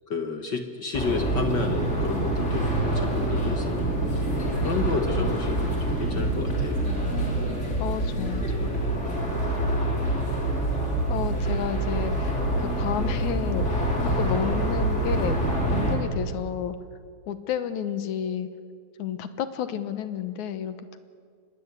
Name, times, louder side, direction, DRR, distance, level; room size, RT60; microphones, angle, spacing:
voice 1, 0.1-4.2 4.6-6.8, left 4 dB, 45° left, 6 dB, 1.5 m, -31 dB
sound 1, 0.9-15.9, right 1 dB, 20° left, 4.1 m, -26 dB
voice 2, 7.8-8.9 11.1-13.9 14.2-15.4 15.7-16.8 17.3-18.5 19.0-21.0, left 9 dB, 75° left, 11 dB, 2.4 m, -31 dB
26.0 x 20.5 x 8.2 m, 2.1 s
omnidirectional pair, 3.5 m